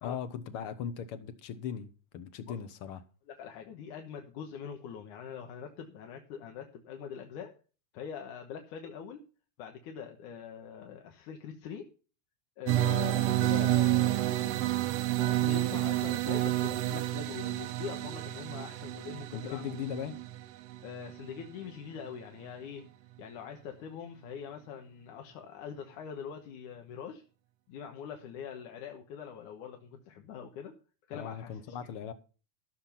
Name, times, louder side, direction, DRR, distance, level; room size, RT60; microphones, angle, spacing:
voice 1, 0.0-3.0 19.3-20.2 31.1-32.1, left 8 dB, 65° left, 1.4 m, -39 dB
voice 2, 3.3-7.5 7.9-9.2 9.6-11.9 12.6-14.6 15.2-19.8 20.8-22.8 23.2-27.2 27.7-30.7 31.1-31.9, left 7 dB, 90° left, 2.8 m, -43 dB
sound 1, 12.7-21.5, right 16 dB, 75° right, 1.5 m, -30 dB
14.0 x 7.1 x 5.7 m
omnidirectional pair, 3.4 m